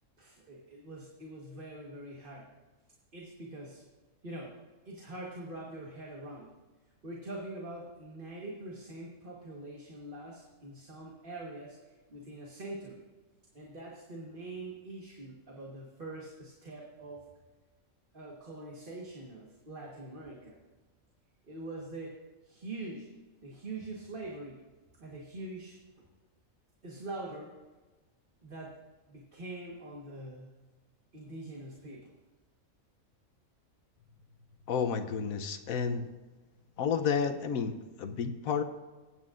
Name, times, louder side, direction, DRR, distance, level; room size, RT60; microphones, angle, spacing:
voice 1, 0.2-2.5 3.1-3.8 4.2-4.5 4.8-6.5 7.0-11.8 12.1-13.0 13.5-17.3 18.1-20.5 21.4-23.1 23.4-24.6 25.0-26.0 26.8-27.6 28.4-28.8 29.1-30.5 31.1-32.1, right 2 dB, 40° right, -3 dB, 1.6 m, -44 dB
voice 2, 34.7-36.1 36.8-38.6, left 6 dB, 80° left, 9 dB, 1.2 m, -31 dB
21.0 x 9.2 x 2.6 m, 1.2 s
omnidirectional pair, 1.5 m